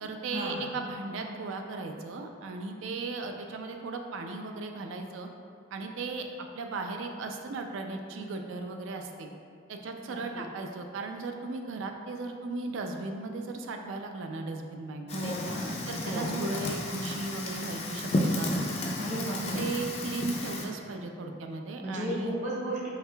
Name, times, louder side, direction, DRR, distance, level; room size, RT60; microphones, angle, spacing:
voice 1, 0.0-5.3 5.7-9.3 9.7-15.3 15.9-18.8 19.3-22.3, right 3 dB, 75° right, 4 dB, 0.4 m, -36 dB
voice 2, 10.0-10.4 15.1-15.7 16.1-16.3 19.0-19.7 21.8-22.9, equal, 35° right, -6 dB, 0.8 m, -34 dB
Fire, 15.1-20.6, left 1 dB, 30° left, 0.3 m, -32 dB
4.6 x 3.3 x 2.2 m, 2.4 s
head